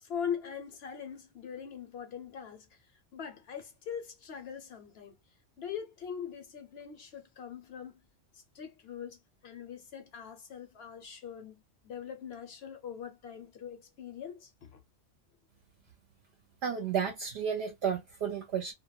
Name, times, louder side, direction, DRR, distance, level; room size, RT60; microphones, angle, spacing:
voice 1, 0.0-2.7 3.1-5.1 5.6-7.9 8.5-9.2 9.4-14.8, left 8 dB, 65° left, 0.8 m, -41 dB
voice 2, 16.6-18.7, right 7 dB, 65° right, 0.8 m, -32 dB
2.2 x 2.0 x 2.9 m
omnidirectional pair, 1.3 m